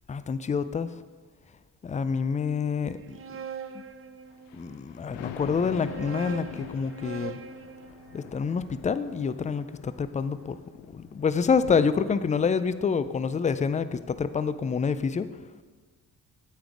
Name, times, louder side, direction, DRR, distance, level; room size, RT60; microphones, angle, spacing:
voice 1, 0.1-0.9 1.8-3.2 3.7-3.8 4.5-7.4 8.1-10.6 10.9-15.3, left 5 dB, 15° left, 14 dB, 0.3 m, -27 dB
sound 1, 2.9-4.8 5.6-9.7, right 6 dB, 30° right, 0.6 m, -42 dB
Thunder, 4.3-12.6 13.0-13.1, left 9 dB, 70° left, 0.7 m, -45 dB
8.8 x 5.3 x 4.9 m, 1.5 s
hypercardioid pair, 40°, 48 cm